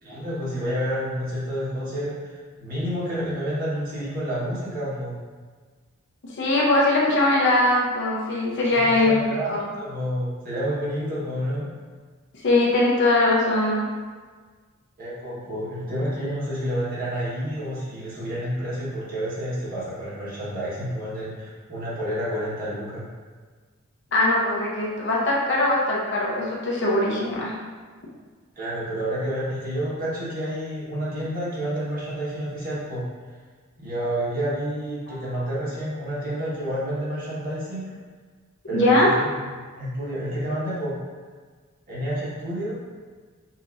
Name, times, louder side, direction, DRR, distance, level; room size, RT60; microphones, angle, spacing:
voice 1, 0.0-5.2 8.7-11.7 15.0-23.1 28.5-33.0 33.8-37.9 38.7-39.4 39.7-40.9 41.9-42.8, equal, 40° right, -8 dB, 1.4 m, -29 dB
voice 2, 6.2-9.1 9.5-9.6 12.4-13.8 24.1-27.5 35.1-35.2 38.7-39.1, left 2 dB, 55° left, -4 dB, 0.8 m, -21 dB
5.7 x 2.8 x 2.6 m, 1.5 s
head